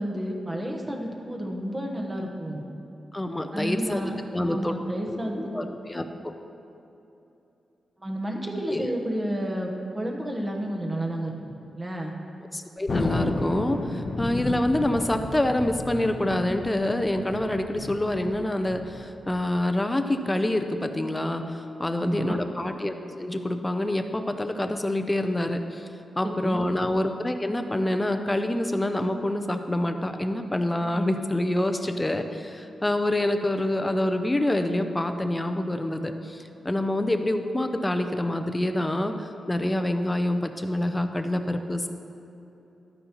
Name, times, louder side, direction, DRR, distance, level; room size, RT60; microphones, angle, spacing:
voice 1, 0.0-2.6 3.5-4.2 4.4-5.7 8.0-12.1 22.0-22.4 26.2-26.6, right 1 dB, 20° right, 1 dB, 1.0 m, -31 dB
voice 2, 3.1-4.7 5.1-6.3 8.7-8.9 12.5-25.9 26.2-41.9, left 1 dB, 10° left, 7 dB, 0.5 m, -27 dB
Thunder, 12.9-19.7, left 2 dB, 45° left, 0.7 m, -32 dB
12.0 x 9.2 x 3.0 m, 2.9 s
wide cardioid pair, 145°, 0 cm